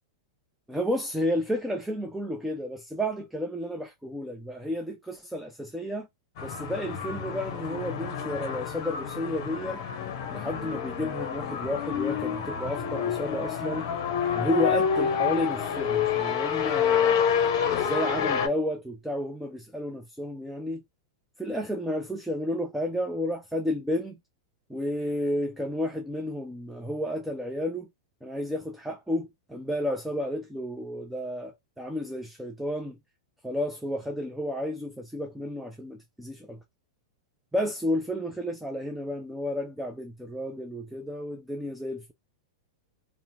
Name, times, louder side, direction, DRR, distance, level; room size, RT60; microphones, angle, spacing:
voice 1, 0.7-6.1 6.4-9.8 10.3-13.9 14.3-17.2 17.7-20.8 21.4-24.2 24.7-27.9 28.2-33.0 33.4-36.6 37.5-42.1, left 1 dB, ahead, 0.4 m, -31 dB
sound 1, 6.4-18.5, left 8 dB, 55° left, 0.7 m, -28 dB
2.8 x 2.0 x 2.7 m
hypercardioid pair, 135°, 2 cm